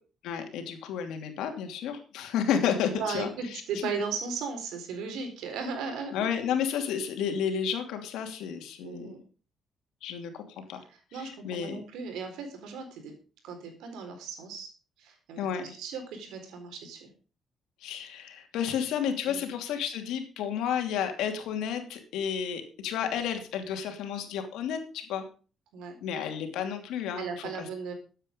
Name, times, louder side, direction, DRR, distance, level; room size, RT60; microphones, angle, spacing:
voice 1, 0.2-3.6 6.1-9.1 10.0-10.8 11.1-11.8 15.4-15.8 17.8-25.2 26.0-27.7, left 8 dB, 90° left, 5 dB, 2.8 m, -31 dB
voice 2, 2.9-6.1 8.8-9.2 10.9-13.1 13.4-14.7 15.0-17.1 19.2-19.4 25.7-26.0 27.2-27.9, right 5 dB, 90° right, 5 dB, 4.2 m, -36 dB
14.0 x 8.9 x 5.3 m, 0.37 s
cardioid pair, 90°, 0 cm